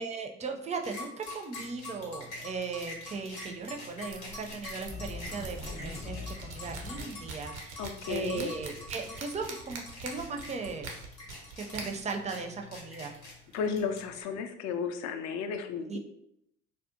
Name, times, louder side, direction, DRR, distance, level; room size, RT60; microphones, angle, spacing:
voice 1, 0.0-6.2 6.4-10.9 11.5-13.2 15.9-16.0, right 4 dB, 20° right, 4 dB, 0.4 m, -37 dB
sound 1, 0.8-14.2, left 2 dB, 80° left, 0.8 m, -45 dB
sound 2, 1.6-14.2, right 2 dB, 90° right, 0.5 m, -47 dB
sound 3, 4.9-8.2, left 2 dB, 20° left, 0.7 m, -42 dB
voice 2, 7.8-8.5 13.5-16.0, left 6 dB, 55° left, 7 dB, 0.4 m, -33 dB
2.6 x 2.1 x 2.6 m, 0.78 s
hypercardioid pair, 50°, 33 cm